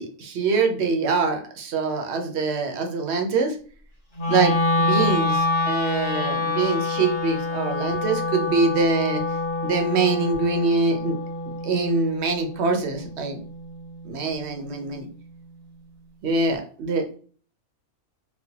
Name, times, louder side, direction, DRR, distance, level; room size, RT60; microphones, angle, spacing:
voice 1, 0.0-3.5 4.3-9.2 9.6-11.1 11.6-13.4 14.0-15.1 16.2-17.2, right 4 dB, 55° right, 4 dB, 0.9 m, -24 dB
Wind instrument woodwind instrument, 4.2-14.3, left 2 dB, 25° left, 0.9 m, -26 dB
4.2 x 2.3 x 2.8 m, 0.43 s
omnidirectional pair, 1.5 m